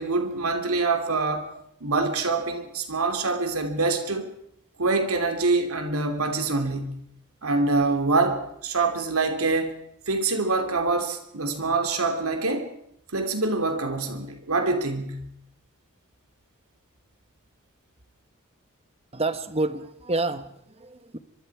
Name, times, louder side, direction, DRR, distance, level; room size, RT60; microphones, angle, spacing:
voice 1, 0.0-1.5 1.8-4.3 4.8-7.0 7.4-9.7 10.1-12.7 13.1-15.3, right 3 dB, 85° right, 6 dB, 2.9 m, -25 dB
voice 2, 19.1-21.2, right 2 dB, 30° right, 11 dB, 1.2 m, -29 dB
25.0 x 23.5 x 4.8 m, 0.75 s
head